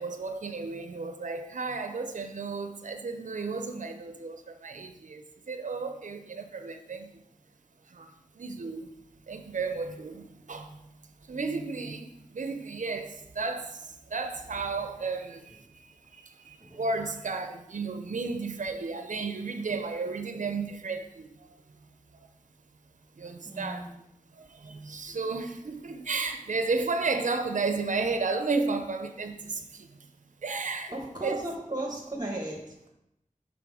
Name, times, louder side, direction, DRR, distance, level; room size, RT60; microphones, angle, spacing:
voice 1, 0.0-7.2 7.9-8.9 9.3-10.9 11.2-21.5 22.1-22.3 23.2-23.9 24.3-30.1 30.4-30.9 31.2-31.4, right 4 dB, 65° right, 0.5 m, -33 dB
voice 2, 23.4-24.0 30.9-32.9, right 1 dB, 30° right, 1.1 m, -36 dB
6.0 x 3.6 x 4.8 m
wide cardioid pair, 55°, 14 cm